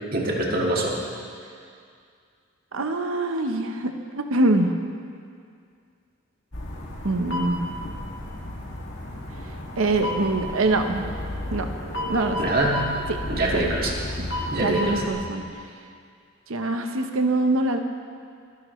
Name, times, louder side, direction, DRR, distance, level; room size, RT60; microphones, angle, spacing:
voice 1, 0.1-1.0 12.4-12.8 13.3-14.0 14.5-15.0, right 1 dB, 45° right, -2 dB, 2.0 m, -24 dB
voice 2, 2.7-4.7 7.0-7.8 9.8-11.0 11.5-11.7 12.1-12.4 13.5-13.7 14.2-14.3 14.6-15.4 16.5-17.8, right 2 dB, 75° right, 5 dB, 1.0 m, -24 dB
sound 1, 6.5-15.1, left 1 dB, 65° left, 2.2 m, -32 dB
24.0 x 11.0 x 3.2 m, 2.3 s
head